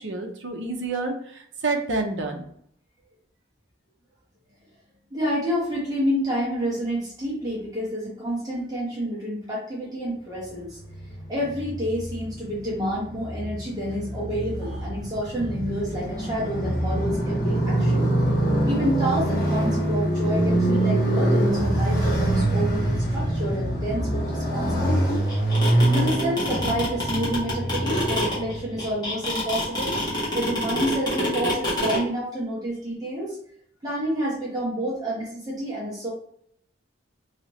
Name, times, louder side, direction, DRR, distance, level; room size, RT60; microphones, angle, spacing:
voice 1, 0.0-2.4, right 3 dB, 75° right, 4 dB, 0.6 m, -28 dB
voice 2, 5.1-10.8 11.3-18.0 18.7-25.2 25.9-33.4 33.8-36.1, equal, 20° right, -7 dB, 1.0 m, -29 dB
Motorcycle, 10.8-28.9, right 1 dB, 45° left, 1.3 m, -25 dB
sound 1, 25.3-32.0, equal, 20° left, 1.1 m, -26 dB
3.0 x 2.8 x 3.0 m, 0.68 s
head